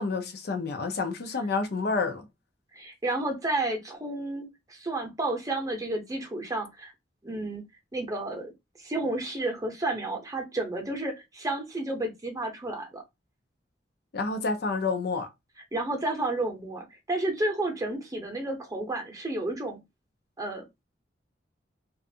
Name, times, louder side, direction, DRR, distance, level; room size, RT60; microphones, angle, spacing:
voice 1, 0.0-2.3 14.1-15.3, left 4 dB, 60° left, 0.5 m, -29 dB
voice 2, 2.7-6.9 7.2-7.6 7.9-8.5 8.8-13.0 15.7-19.8 20.4-20.7, right 2 dB, 20° right, 0.7 m, -31 dB
2.5 x 2.3 x 2.7 m
head